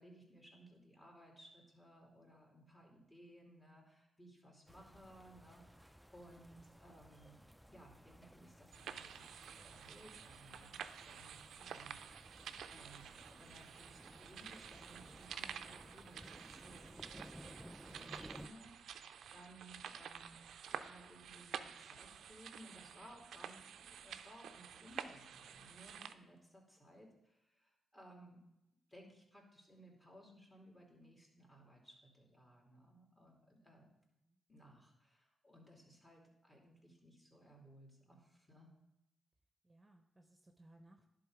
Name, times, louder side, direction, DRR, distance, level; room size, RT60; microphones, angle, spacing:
voice 1, 0.0-7.4 7.7-20.4 20.7-28.4 28.9-33.9 34.5-38.7, right 1 dB, 20° left, -1 dB, 2.8 m, -60 dB
sound 1, 4.7-18.5, equal, ahead, 0.3 m, -58 dB
sound 2, 8.7-26.1, right 8 dB, 75° right, 0.4 m, -50 dB
voice 2, 39.6-41.1, right 1 dB, 20° right, 4 dB, 0.8 m, -65 dB
10.5 x 3.8 x 4.9 m, 0.90 s
supercardioid pair, 45°, 0 cm